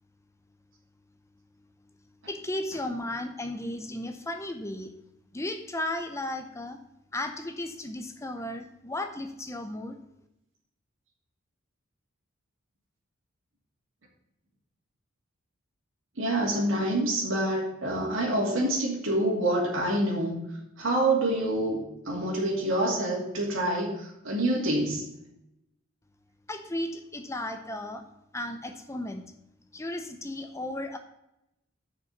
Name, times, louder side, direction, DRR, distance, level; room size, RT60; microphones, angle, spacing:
voice 1, 2.3-4.9 5.3-6.8 7.1-10.0 26.5-28.0 28.3-29.3 29.7-31.0, left 1 dB, 15° left, 7 dB, 0.6 m, -35 dB
voice 2, 16.2-20.4 20.8-25.0, right 1 dB, 70° right, -4 dB, 2.6 m, -27 dB
6.8 x 5.8 x 6.9 m, 0.85 s
head